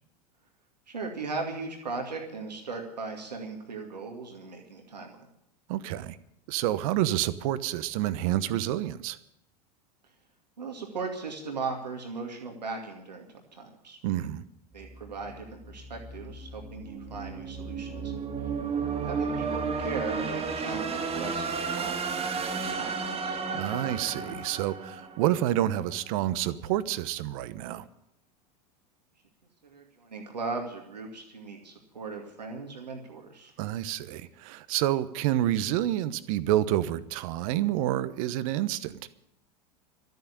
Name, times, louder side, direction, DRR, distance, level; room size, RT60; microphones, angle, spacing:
voice 1, 0.9-5.3 10.6-14.0 14.7-18.5 19.0-22.1 22.5-22.9 23.2-23.4 29.6-33.5, right 4 dB, 85° right, 2 dB, 2.3 m, -38 dB
voice 2, 5.7-6.2 6.5-9.2 14.0-14.5 23.5-27.9 33.6-39.0, right 13 dB, 55° right, 15 dB, 1.1 m, -28 dB
sound 1, 14.8-25.8, right 5 dB, 30° right, 2.2 m, -33 dB
13.0 x 9.3 x 10.0 m, 0.79 s
hypercardioid pair, 85°, 21 cm